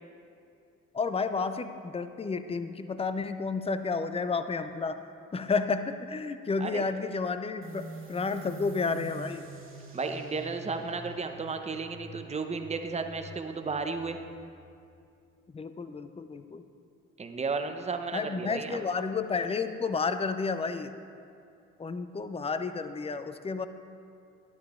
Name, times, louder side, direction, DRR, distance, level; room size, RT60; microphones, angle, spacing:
voice 1, 0.9-5.0 5.3-9.5 15.5-16.6 18.1-20.9 21.8-23.7, left 4 dB, 15° left, 10 dB, 0.5 m, -31 dB
sound 1, 7.6-14.9, right 2 dB, 35° right, 1.8 m, -46 dB
voice 2, 9.9-14.2 17.2-18.8, right 4 dB, 20° right, 6 dB, 0.7 m, -33 dB
11.0 x 9.5 x 2.4 m, 2.4 s
hypercardioid pair, 50°, 37 cm